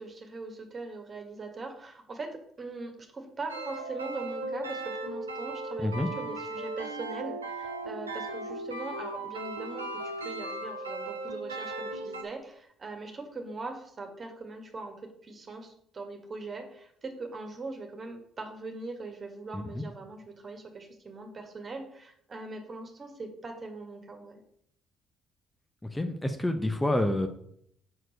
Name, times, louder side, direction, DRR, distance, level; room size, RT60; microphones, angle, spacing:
voice 1, 0.0-15.0 15.2-24.4, right 3 dB, 35° right, 4 dB, 1.9 m, -41 dB
sound 1, 3.5-12.2, right 2 dB, 85° right, 0.7 m, -37 dB
voice 2, 19.5-19.8 25.9-27.3, left 1 dB, 10° left, 5 dB, 0.9 m, -28 dB
6.3 x 4.5 x 6.4 m, 0.69 s
figure-of-eight pair, 45°, 0 cm